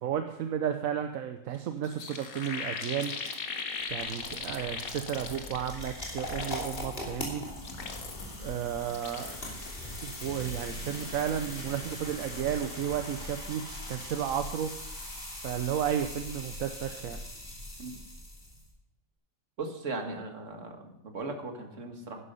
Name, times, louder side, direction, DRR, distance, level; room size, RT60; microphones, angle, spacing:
voice 1, 0.0-3.1 3.4-3.6 3.9-7.4 8.4-9.3 10.0-13.6 13.9-14.7 15.4-17.2, right 9 dB, 80° right, 7 dB, 1.2 m, -33 dB
sound 1, 1.5-1.6 1.8-5.9 6.2-7.0 7.5-8.4 8.8-11.8 12.1-12.4, left 5 dB, 85° left, 1.7 m, -40 dB
sound 2, 3.8-18.7, left 1 dB, 40° left, 3.2 m, -41 dB
voice 2, 19.6-22.2, right 3 dB, 60° right, 4 dB, 2.0 m, -38 dB
11.5 x 11.0 x 5.5 m, 0.82 s
omnidirectional pair, 1.4 m